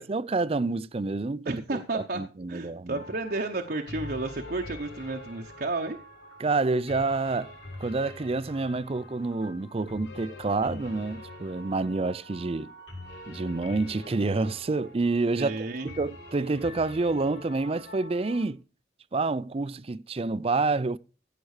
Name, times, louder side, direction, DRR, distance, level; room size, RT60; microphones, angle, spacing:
voice 1, 0.0-3.0 6.4-7.5 7.8-12.7 13.3-18.6 19.1-21.0, right 3 dB, 30° right, 0.5 m, -28 dB
voice 2, 1.4-2.2 2.5-6.0 15.4-15.9, right 2 dB, 55° right, 0.9 m, -32 dB
sound 1, 2.9-18.4, left 2 dB, 80° left, 6.3 m, -45 dB
16.0 x 6.0 x 4.9 m
head